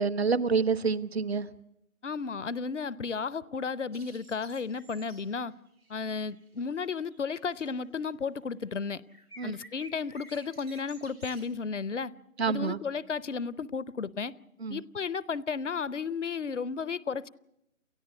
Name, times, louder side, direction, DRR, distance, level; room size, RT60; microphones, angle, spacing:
voice 1, 0.0-1.5 9.4-9.5 12.4-12.8 14.6-14.8, right 5 dB, 50° right, 0.9 m, -27 dB
voice 2, 2.0-5.5 5.9-9.0 9.4-12.1 12.5-14.3 14.7-17.3, left 5 dB, 60° left, 0.8 m, -33 dB
sound 1, 3.9-7.7 9.0-11.5, right 2 dB, 85° right, 4.7 m, -53 dB
29.5 x 14.0 x 8.2 m
figure-of-eight pair, 155°, 42 cm